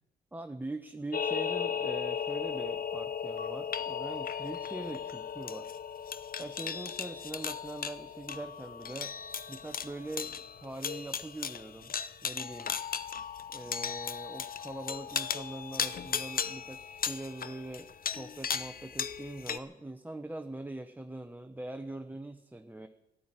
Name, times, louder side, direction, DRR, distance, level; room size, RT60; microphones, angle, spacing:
voice 1, 0.3-5.7 6.0-6.1 6.4-9.1 9.5-12.0 12.2-12.8 13.5-22.9, right 2 dB, 10° right, 7 dB, 0.9 m, -42 dB
sound 1, 1.1-19.6, left 7 dB, 55° left, 0.8 m, -36 dB
13.0 x 11.5 x 8.9 m, 1.0 s
cardioid pair, 65°, 18 cm